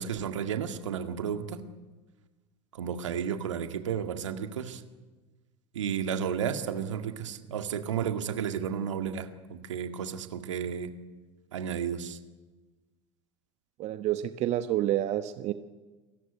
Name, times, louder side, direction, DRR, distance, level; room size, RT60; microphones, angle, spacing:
voice 1, 0.0-1.6 2.7-4.8 5.7-10.9 11.5-12.2, right 8 dB, 80° right, 7 dB, 1.9 m, -32 dB
voice 2, 13.8-15.5, right 13 dB, 45° right, 10 dB, 1.1 m, -28 dB
28.0 x 14.5 x 9.4 m, 1.3 s
hypercardioid pair, 80°, 15 cm